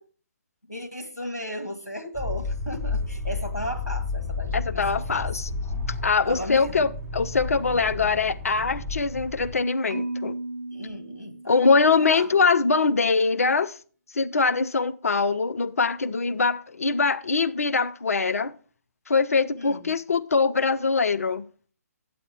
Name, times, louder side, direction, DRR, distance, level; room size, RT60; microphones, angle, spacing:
voice 1, 0.7-5.3 6.2-6.9 10.7-12.3 19.6-19.9, equal, 90° left, 1.7 m, -35 dB
sound 1, 2.1-9.5, left 3 dB, 5° left, 4.1 m, -32 dB
voice 2, 4.5-5.5 6.0-10.4 11.5-13.7 14.1-18.5 19.1-21.4, left 4 dB, 65° left, 0.5 m, -23 dB
Marimba xylophone, 9.9-12.1, right 2 dB, 65° right, 0.7 m, -35 dB
9.2 x 7.7 x 3.5 m
figure-of-eight pair, 135°, 9 cm